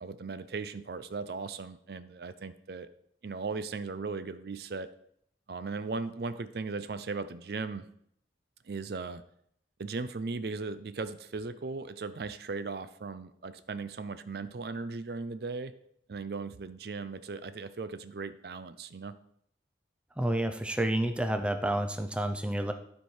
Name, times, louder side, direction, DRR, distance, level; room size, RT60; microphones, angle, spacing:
voice 1, 0.0-2.9 3.2-4.9 5.5-7.9 8.6-9.2 9.8-15.7 16.1-19.1, right 4 dB, 60° right, 12 dB, 0.5 m, -37 dB
voice 2, 20.2-22.7, right 1 dB, 5° right, 6 dB, 0.5 m, -29 dB
12.0 x 4.5 x 4.8 m, 0.70 s
head